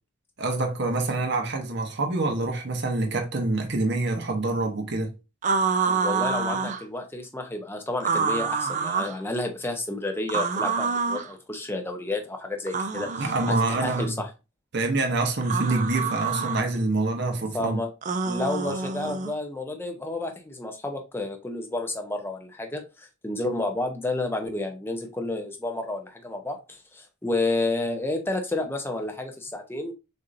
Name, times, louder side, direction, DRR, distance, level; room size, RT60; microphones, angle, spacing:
voice 1, 0.4-5.1 13.2-14.2 14.7-17.8, right 2 dB, 50° right, 0.9 m, -26 dB
sound 1, 5.4-6.8 8.0-9.2 10.3-11.3 12.7-14.1 15.4-16.6 18.0-19.3, right 5 dB, 35° right, 0.4 m, -27 dB
voice 2, 5.9-13.3 13.7-14.3 17.5-17.9 18.3-29.9, left 2 dB, 10° left, 0.7 m, -31 dB
6.5 x 2.7 x 2.6 m
head